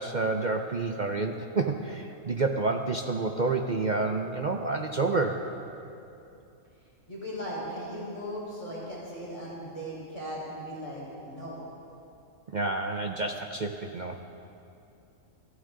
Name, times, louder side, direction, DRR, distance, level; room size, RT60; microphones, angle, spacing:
voice 1, 0.0-5.5 12.5-14.2, right 3 dB, 45° right, 4 dB, 0.6 m, -29 dB
voice 2, 7.1-11.6, equal, 25° left, -7 dB, 4.3 m, -38 dB
24.0 x 14.5 x 3.8 m, 2.7 s
omnidirectional pair, 1.4 m